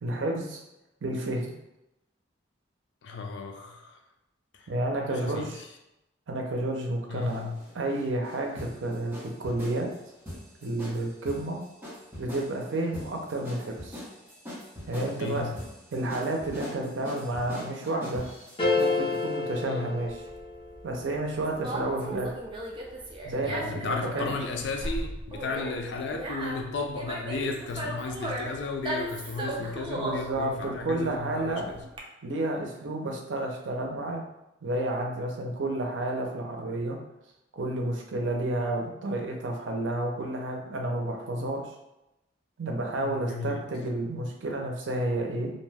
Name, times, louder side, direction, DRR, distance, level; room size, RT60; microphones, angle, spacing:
voice 1, 0.0-0.6 1.0-1.5 4.7-5.6 6.3-7.5 7.7-9.9 10.6-11.6 12.2-14.0 14.9-15.5 15.9-18.2 18.8-20.2 20.8-22.4 23.2-24.4 30.0-31.7 32.2-34.2 34.6-37.0 37.5-41.6 42.6-45.5, right 1 dB, 80° right, 1 dB, 0.5 m, -31 dB
voice 2, 3.0-4.0 4.5-4.7 5.1-5.7 7.1-7.6 15.1-15.6 19.6-19.9 21.7-21.8 23.4-31.8 43.0-43.6, left 4 dB, 65° left, 4 dB, 0.4 m, -34 dB
sound 1, 7.2-19.2, left 1 dB, 10° right, 0.9 m, -42 dB
sound 2, 18.6-20.8, left 3 dB, 30° left, 0.7 m, -28 dB
Conversation, 20.1-32.0, right 1 dB, 25° right, 0.4 m, -36 dB
2.6 x 2.2 x 3.2 m, 0.91 s
head